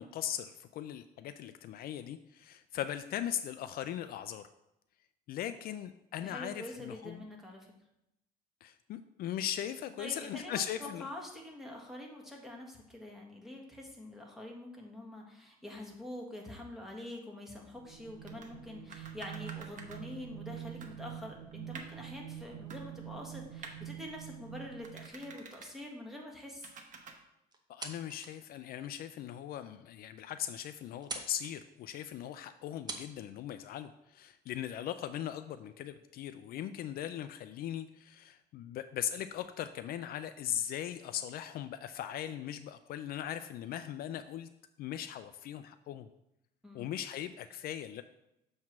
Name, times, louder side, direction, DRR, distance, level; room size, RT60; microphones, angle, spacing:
voice 1, 0.0-4.5 5.3-7.3 8.6-11.1 27.7-44.5 44.8-46.1 46.7-48.0, left 10 dB, 65° left, 11 dB, 0.4 m, -39 dB
voice 2, 6.2-7.7 10.0-26.7 46.6-46.9, left 1 dB, ahead, -1 dB, 1.5 m, -46 dB
sound 1, 17.7-25.4, right 12 dB, 85° right, 0.6 m, -46 dB
sound 2, 18.3-18.5 18.9-20.0 20.5-20.6 20.8-22.1 22.7-23.2 23.6-23.8 24.8-25.7 26.6-27.1, right 4 dB, 50° right, 1.0 m, -49 dB
sound 3, 27.5-28.4 28.9-29.0 29.6-29.7 30.0-30.1 30.3-30.7 31.0-31.5 32.4-32.5 32.9-33.1, right 3 dB, 25° right, 0.9 m, -43 dB
7.3 x 3.2 x 5.9 m, 0.85 s
cardioid pair, 110°, 17 cm